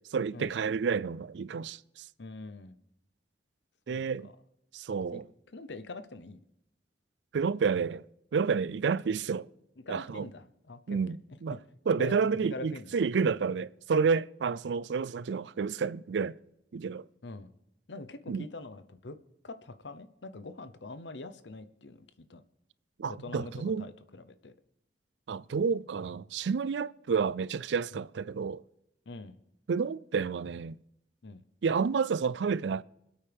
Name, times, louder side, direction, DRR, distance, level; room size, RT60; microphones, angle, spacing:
voice 1, 0.1-2.1 3.9-4.3 4.7-5.2 7.3-8.0 8.3-9.5 9.9-10.3 10.9-11.6 11.9-16.4 16.7-17.0 18.3-18.4 23.0-23.9 25.3-28.6 29.7-30.8 31.6-32.8, right 5 dB, 80° right, 0.4 m, -30 dB
voice 2, 2.2-2.8 3.9-4.3 5.1-5.2 5.5-6.4 9.9-11.2 11.5-11.6 12.0-12.2 12.4-12.9 13.2-13.3 17.2-17.5 17.9-19.2 19.4-22.4 23.1-24.5 27.9-28.0 29.1-29.4 31.2-31.4, left 2 dB, 90° left, 0.8 m, -44 dB
25.5 x 8.7 x 3.5 m
head